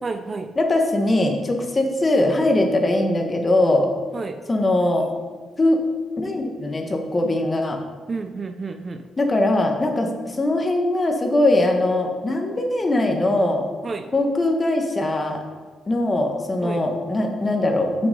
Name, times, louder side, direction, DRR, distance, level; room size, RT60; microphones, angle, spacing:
voice 1, 0.0-0.5 4.1-4.4 8.1-9.0 13.8-14.1 16.6-16.8, right 4 dB, 35° right, 8 dB, 0.5 m, -30 dB
voice 2, 0.6-3.9 4.5-5.1 5.6-5.8 6.2-7.8 9.2-13.6 14.1-15.4 15.9-18.1, left 1 dB, 25° left, 3 dB, 1.2 m, -21 dB
6.2 x 6.1 x 5.3 m, 1.4 s
cardioid pair, 90°, 0 cm